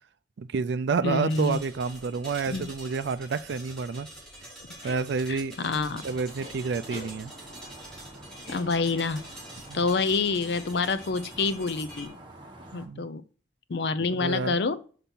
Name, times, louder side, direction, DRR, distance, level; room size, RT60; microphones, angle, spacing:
voice 1, 0.4-4.1 4.8-5.6 6.0-7.3 9.7-9.9 12.8-13.1 14.1-14.6, right 5 dB, 70° right, 0.4 m, -29 dB
voice 2, 1.0-1.6 2.5-2.7 5.3-6.0 8.5-9.3 9.7-12.2 12.7-13.2 13.7-14.8, left 4 dB, 65° left, 0.5 m, -27 dB
sound 1, 1.3-12.1, right 1 dB, 5° left, 2.5 m, -46 dB
sound 2, 4.8-5.1 6.4-6.5 6.9-7.1 8.4-9.1, left 2 dB, 50° left, 2.5 m, -42 dB
sound 3, 5.9-12.9, right 1 dB, 25° right, 1.3 m, -48 dB
5.9 x 5.4 x 4.2 m
head